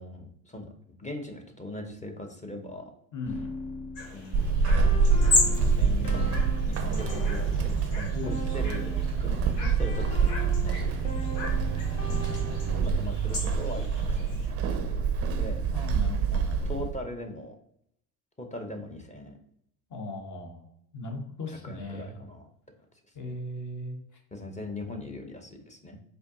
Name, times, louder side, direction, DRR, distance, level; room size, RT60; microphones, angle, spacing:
voice 1, 0.0-2.9 4.1-11.2 11.6-11.9 12.7-15.1 15.3-15.6 16.3-17.5 18.4-19.4 21.6-22.5 24.3-26.0, left 2 dB, 15° left, 4 dB, 0.7 m, -41 dB
voice 2, 3.1-3.5 8.1-8.6 12.1-12.8 15.7-16.9 19.9-20.6 20.9-22.2 23.1-24.0, left 2 dB, 35° left, 3 dB, 1.1 m, -38 dB
sound 1, 3.3-9.2 9.8-13.0, left 1 dB, 55° left, 1.2 m, -41 dB
sound 2, 3.9-14.5, left 2 dB, 75° left, 1.2 m, -35 dB
Walk footsteps / Squeak, 4.3-17.0, right 5 dB, 30° right, 0.5 m, -26 dB
4.3 x 2.7 x 2.6 m, 0.73 s
hypercardioid pair, 70°, 49 cm